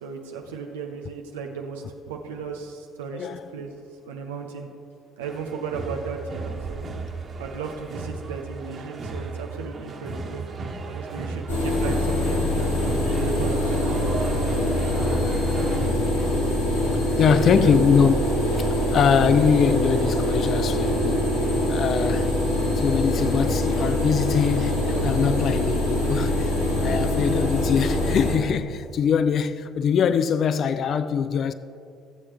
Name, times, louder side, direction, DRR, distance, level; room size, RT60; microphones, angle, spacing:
voice 1, 0.0-3.7 4.0-4.7 5.2-6.9 7.4-10.4 10.8-13.9 14.6-14.8 15.3-16.4 17.2-17.8 26.8-27.0, right 5 dB, 85° right, 0.7 m, -35 dB
sound 1, 5.2-15.9, right 3 dB, 45° right, 1.6 m, -34 dB
sound 2, 11.5-28.3, left 1 dB, 90° left, 1.8 m, -24 dB
voice 2, 17.2-18.2 18.5-21.3 21.7-22.3 22.8-26.5 26.8-31.5, left 7 dB, 55° left, 0.4 m, -23 dB
17.0 x 7.2 x 3.5 m
hypercardioid pair, 55°, 0 cm